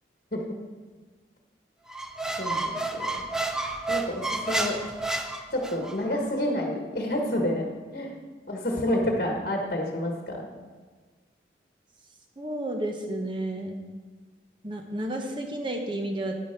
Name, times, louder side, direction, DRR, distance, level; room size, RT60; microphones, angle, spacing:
Squeak, 1.9-6.0, right 2 dB, 5° right, 0.4 m, -30 dB
voice 1, 2.4-3.2 3.9-4.7 5.5-7.6 7.9-8.1 8.5-10.5, left 1 dB, 50° left, 1 dB, 1.3 m, -29 dB
voice 2, 12.4-13.8 14.6-16.4, right 1 dB, 25° right, 3 dB, 1.0 m, -31 dB
9.8 x 8.4 x 4.5 m, 1.4 s
head